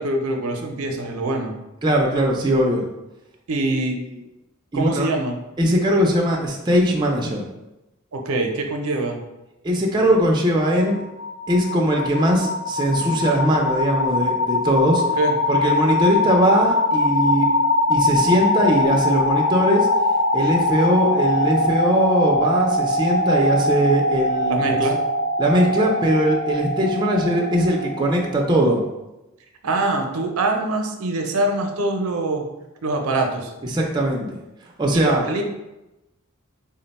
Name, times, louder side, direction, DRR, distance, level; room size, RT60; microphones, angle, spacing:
voice 1, 0.0-1.5 3.5-4.0 4.7-5.4 8.1-9.2 15.0-15.3 24.5-25.0 29.6-32.5 32.8-33.5 34.9-35.4, right 2 dB, 80° right, 3 dB, 0.5 m, -24 dB
voice 2, 1.8-2.8 4.7-5.1 5.6-7.4 9.6-11.0 11.5-15.0 15.5-17.5 17.9-19.9 20.3-24.8 25.4-28.8 33.6-34.4 34.8-35.2, right 1 dB, 20° right, 0 dB, 0.4 m, -20 dB
sound 1, 10.9-28.6, left 2 dB, 75° left, 0.5 m, -22 dB
3.7 x 2.1 x 4.0 m, 0.97 s
head